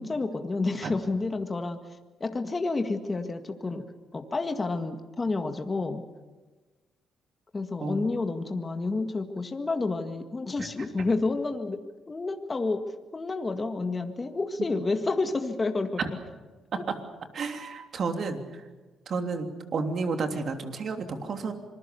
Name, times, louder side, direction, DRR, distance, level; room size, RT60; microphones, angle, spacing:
voice 1, 0.0-1.8 2.2-3.9 4.1-6.0 7.5-16.0, left 3 dB, 25° left, 6 dB, 1.8 m, -30 dB
voice 2, 17.3-18.6 19.1-21.5, right 4 dB, 55° right, 5 dB, 3.1 m, -31 dB
26.0 x 20.5 x 7.0 m, 1.3 s
cardioid pair, 90°, 0 cm